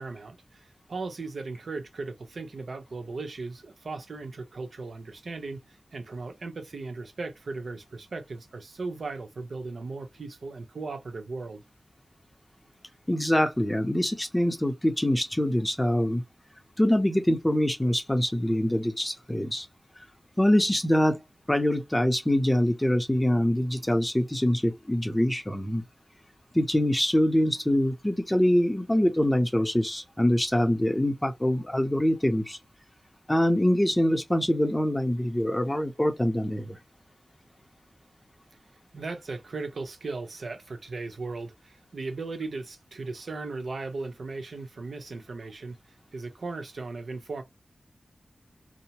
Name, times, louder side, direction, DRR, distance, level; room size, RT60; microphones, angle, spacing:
voice 1, 0.0-5.6 5.9-11.6 38.9-45.8 46.1-47.4, right 3 dB, 75° right, 0.8 m, -37 dB
voice 2, 13.1-16.2 16.8-19.7 20.4-21.2 21.5-25.8 26.5-32.6 33.3-36.8, left 1 dB, 10° left, 0.6 m, -24 dB
2.8 x 2.0 x 2.9 m
wide cardioid pair, 75°, 0 cm